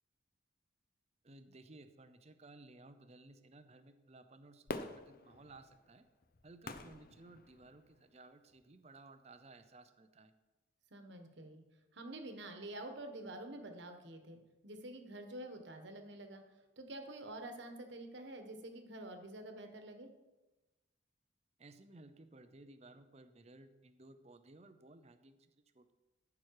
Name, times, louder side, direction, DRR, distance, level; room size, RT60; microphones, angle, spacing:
voice 1, 1.2-6.1 6.4-10.3 21.6-25.9, right 2 dB, 35° right, 10 dB, 0.6 m, -58 dB
Fireworks, 4.7-8.0 8.6-8.7, left 2 dB, 45° left, 0.6 m, -47 dB
voice 2, 10.9-11.6 11.9-16.4 16.8-20.1, right 1 dB, 65° right, 6 dB, 1.3 m, -48 dB
13.5 x 6.0 x 4.8 m, 1.1 s
head